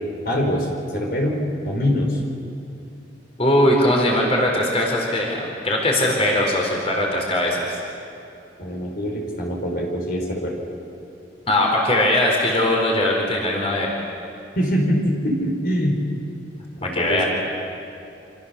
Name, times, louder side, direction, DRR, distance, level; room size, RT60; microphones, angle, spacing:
voice 1, 0.2-0.7 0.9-1.4 1.6-2.2 8.6-10.5 14.6-16.0 16.8-17.3, equal, 55° left, 0 dB, 4.7 m, -23 dB
voice 2, 3.4-7.8 11.5-13.9 16.8-17.3, left 1 dB, 35° left, 0 dB, 4.4 m, -20 dB
28.5 x 27.0 x 7.0 m, 2.7 s
head